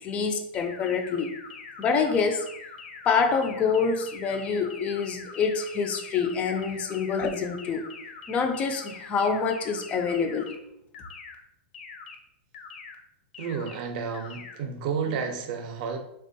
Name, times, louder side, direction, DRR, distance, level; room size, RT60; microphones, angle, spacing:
voice 1, 0.0-1.3 1.8-2.5 3.1-7.8 8.3-10.5, left 5 dB, 20° left, 0.3 m, -26 dB
sound 1, 0.5-10.6 10.9-11.4 11.7-12.2 12.5-13.0 13.3-13.8 14.1-14.6, left 5 dB, 75° left, 0.5 m, -43 dB
voice 2, 13.4-16.0, right 6 dB, 50° right, 0.5 m, -31 dB
3.4 x 2.2 x 2.6 m
supercardioid pair, 150°, 6 cm